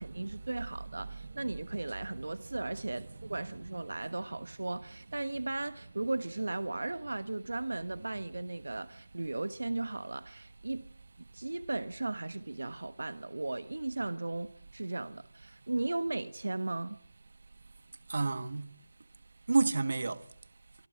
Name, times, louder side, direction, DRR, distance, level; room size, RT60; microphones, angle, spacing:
voice 1, 0.0-10.9 11.3-17.0, right 2 dB, 75° right, 1.2 m, -36 dB
voice 2, 1.2-1.8 3.0-3.4 18.1-18.7 19.5-20.2, right 3 dB, 60° right, 1.5 m, -31 dB
25.0 x 14.5 x 7.8 m
figure-of-eight pair, 170°, 0 cm